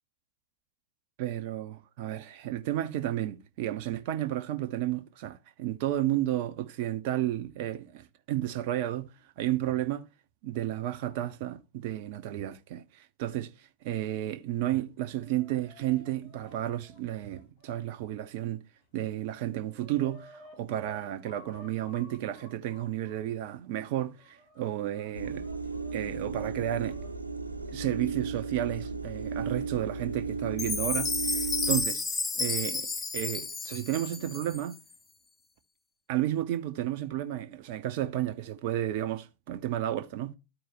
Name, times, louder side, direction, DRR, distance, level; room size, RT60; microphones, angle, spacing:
voice 1, 1.2-9.1 9.4-10.1 10.4-18.6 18.9-25.4 25.9-27.0 27.7-32.0 32.4-32.9 33.1-34.8 36.1-40.3, right 13 dB, 50° right, 0.7 m, -32 dB
Chicken rooster, 14.8-18.3 18.8-18.9 19.2-23.2 23.8-27.1 28.3-28.4 29.4-29.5 30.5-30.9, equal, 45° left, 5.6 m, -55 dB
sound 1, 25.1-31.8, right 4 dB, 85° right, 1.1 m, -35 dB
Chime, 30.6-34.8, left 4 dB, 15° left, 1.0 m, -32 dB
12.5 x 4.6 x 3.0 m
figure-of-eight pair, 90°, 0 cm